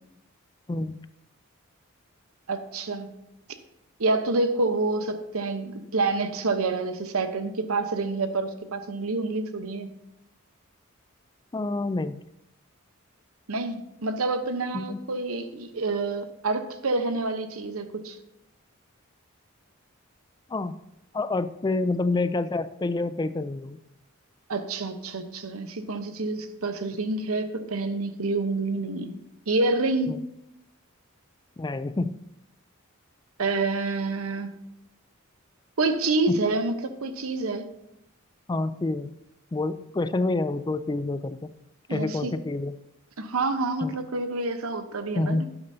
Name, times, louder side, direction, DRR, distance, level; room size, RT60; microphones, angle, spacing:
voice 1, 0.7-1.0 11.5-12.2 14.7-15.0 20.5-20.8 21.1-23.8 30.1-30.2 31.6-32.1 36.3-36.4 38.5-39.1 39.5-41.5 41.9-42.7 43.8-44.0 45.2-45.4, left 2 dB, 20° left, 13 dB, 0.3 m, -28 dB
voice 2, 2.5-3.1 4.0-9.9 13.5-18.2 24.5-29.1 29.5-30.2 33.4-34.5 35.8-37.6 41.9-42.3 43.2-45.5, right 3 dB, 80° right, 8 dB, 0.9 m, -28 dB
12.0 x 9.8 x 2.7 m, 0.84 s
head